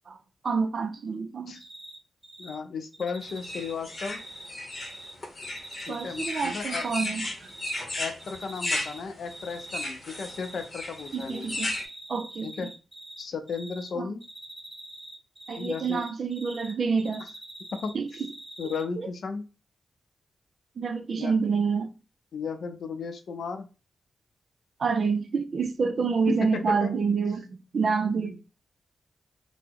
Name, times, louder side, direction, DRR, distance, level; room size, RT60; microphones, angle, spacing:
voice 1, 0.4-1.6 5.9-7.5 11.1-11.7 12.1-12.7 14.0-14.1 15.5-17.2 17.9-18.1 20.8-21.9 24.8-28.4, right 5 dB, 55° right, 0.4 m, -28 dB
Cricket, 1.5-2.0 2.2-2.5 2.9-5.1 5.4-7.1 7.4-7.8 8.2-9.0 9.3-10.7 10.9-13.2 13.5-13.9 14.2-16.7 17.0-18.8, right 1 dB, 15° right, 1.0 m, -44 dB
voice 2, 2.4-4.2 5.9-6.8 8.0-11.5 12.4-12.7 13.2-14.2 15.6-16.0 17.8-17.9 18.6-19.4 21.2-21.3 22.3-23.7 26.0-26.9 28.1-28.4, left 5 dB, 70° left, 0.5 m, -34 dB
sound 1, 3.4-11.8, left 1 dB, 30° left, 0.8 m, -34 dB
2.9 x 2.0 x 3.5 m
cardioid pair, 90°, 0 cm